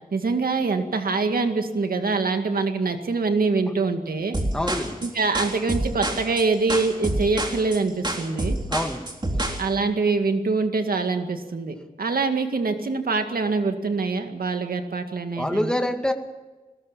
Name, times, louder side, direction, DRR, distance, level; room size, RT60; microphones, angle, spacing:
voice 1, 0.1-4.4 5.0-8.6 9.6-15.7, right 4 dB, 85° right, 6 dB, 2.1 m, -24 dB
sound 1, 4.3-9.6, right 1 dB, 30° right, 3.5 m, -27 dB
voice 2, 4.5-5.0 8.7-9.0 15.4-16.1, left 1 dB, 5° left, 4 dB, 2.1 m, -25 dB
20.5 x 18.0 x 7.4 m, 1.2 s
wide cardioid pair, 80°, 15 cm